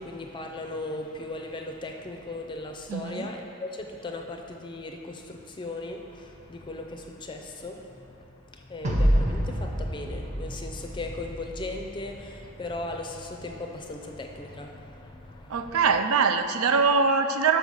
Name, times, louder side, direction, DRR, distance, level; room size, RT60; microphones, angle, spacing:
voice 1, 0.0-15.8, left 2 dB, 20° left, 3 dB, 0.5 m, -38 dB
voice 2, 2.9-3.3 15.5-17.6, right 5 dB, 80° right, 7 dB, 0.4 m, -23 dB
sound 1, 8.8-12.1, equal, 35° right, 0.8 m, -27 dB
5.5 x 5.4 x 6.3 m, 2.8 s
head